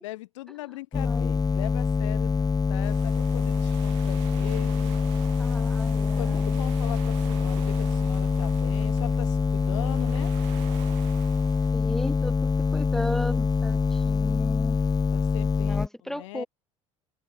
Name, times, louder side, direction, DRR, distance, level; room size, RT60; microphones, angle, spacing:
voice 1, 0.0-5.3 5.7-10.3 15.1-15.8 16.0-16.5, left 18 dB, 65° left, 4.3 m, -40 dB
sound 1, 0.9-15.9, left 5 dB, 20° left, 1.6 m, -25 dB
voice 2, 0.9-1.3 5.4-6.6 11.7-14.8 15.6-16.5, left 1 dB, ahead, 4.6 m, -36 dB
sound 2, 2.8-11.7, right 29 dB, 65° right, 3.0 m, -46 dB
open air
figure-of-eight pair, 60°, 17 cm